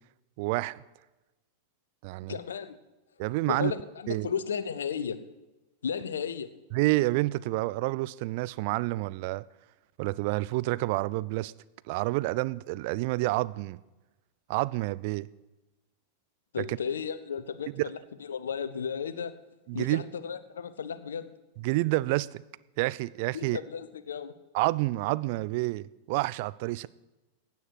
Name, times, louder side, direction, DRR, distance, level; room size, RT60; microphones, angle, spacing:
voice 1, 0.4-0.8 2.0-2.4 3.2-3.7 4.1-4.3 6.7-9.4 10.0-11.5 11.9-13.8 14.5-15.3 16.6-16.8 17.8-17.9 19.7-20.0 21.6-22.4 22.8-23.6 24.5-26.9, right 20 dB, 55° right, 0.4 m, -28 dB
voice 2, 2.3-2.8 3.5-5.2 5.8-6.5 16.5-19.3 19.7-21.3 23.3-24.3, left 7 dB, 75° left, 0.9 m, -34 dB
16.0 x 9.5 x 4.8 m
figure-of-eight pair, 90°, 0 cm